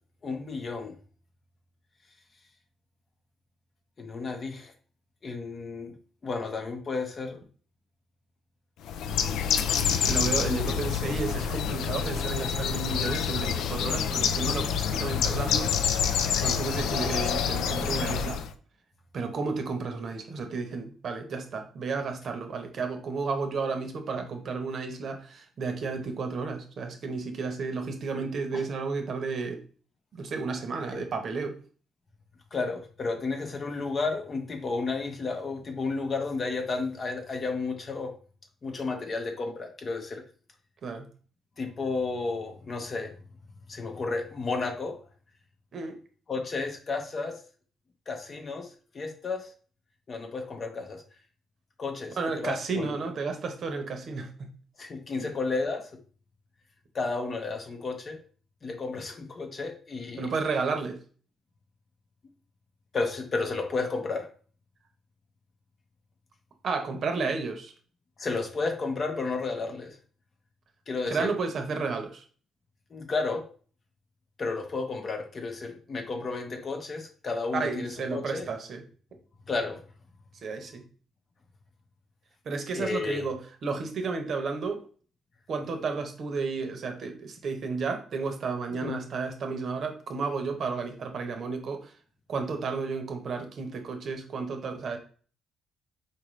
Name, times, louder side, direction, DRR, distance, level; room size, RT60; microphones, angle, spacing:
voice 1, 0.2-0.9 4.0-4.7 5.2-5.9 6.2-7.4 10.5-10.7 28.5-28.6 30.9-31.0 32.5-38.2 38.6-40.2 41.6-43.1 43.7-45.0 46.3-47.4 48.1-48.7 48.9-49.5 50.1-51.0 51.8-52.9 54.8-55.9 56.9-58.2 58.6-60.3 62.9-64.3 68.2-69.9 70.9-71.3 72.9-73.5 74.4-78.5 79.5-79.8 82.8-83.3 88.8-89.0, left 3 dB, 40° left, 5 dB, 0.8 m, -32 dB
Bird, 8.9-18.5, left 8 dB, 80° left, 0.3 m, -27 dB
voice 2, 9.9-15.7 16.4-18.4 19.1-29.6 30.1-31.6 40.8-41.1 45.7-46.0 52.2-54.5 55.2-55.3 60.2-61.0 66.6-67.7 71.1-72.2 77.5-78.8 80.4-80.8 82.4-84.8 85.5-91.9 92.3-95.0, right 4 dB, 55° right, 5 dB, 0.8 m, -32 dB
4.0 x 2.5 x 3.1 m, 0.41 s
cardioid pair, 90°, 0 cm